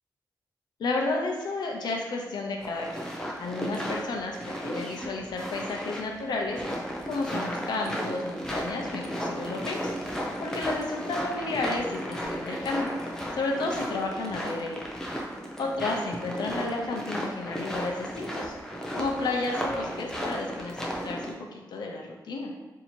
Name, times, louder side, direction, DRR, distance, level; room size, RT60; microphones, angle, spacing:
voice 1, 0.8-2.9 3.4-10.1 10.4-14.8 15.6-18.5 18.9-22.5, left 3 dB, 75° left, 1 dB, 0.6 m, -32 dB
sound 1, 2.6-21.3, equal, 10° left, 0.4 m, -34 dB
2.8 x 2.7 x 4.3 m, 1.1 s
wide cardioid pair, 170°, 7 cm